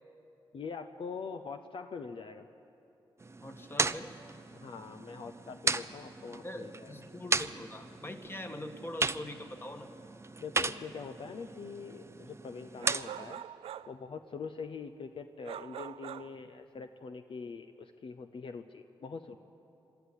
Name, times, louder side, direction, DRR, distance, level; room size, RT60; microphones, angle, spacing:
voice 1, 0.5-2.5 4.5-6.9 10.4-13.4 13.9-19.4, left 5 dB, 65° left, 7 dB, 0.8 m, -43 dB
sound 1, 3.2-13.3, right 3 dB, 25° right, 0.6 m, -36 dB
voice 2, 3.4-4.1 5.7-5.9 6.4-9.9, left 1 dB, 25° left, 5 dB, 1.9 m, -43 dB
sound 2, 12.8-14.0 15.4-16.4, right 10 dB, 80° right, 0.4 m, -43 dB
22.5 x 13.0 x 9.8 m, 3.0 s
cardioid pair, 55°, 10 cm